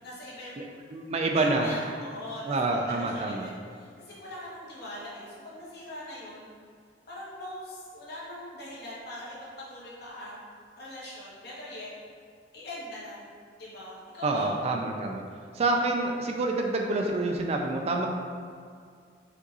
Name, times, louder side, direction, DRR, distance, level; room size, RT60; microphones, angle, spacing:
voice 1, 0.0-0.8 1.3-6.5 7.1-9.4 9.7-10.4 10.8-11.9 12.5-13.3 13.6-14.5, left 1 dB, 65° left, -7 dB, 1.4 m, -42 dB
voice 2, 0.6-1.7 2.5-3.5 14.2-15.2 15.5-18.1, right 2 dB, 35° right, 2 dB, 0.3 m, -27 dB
5.2 x 2.6 x 4.0 m, 2.2 s
head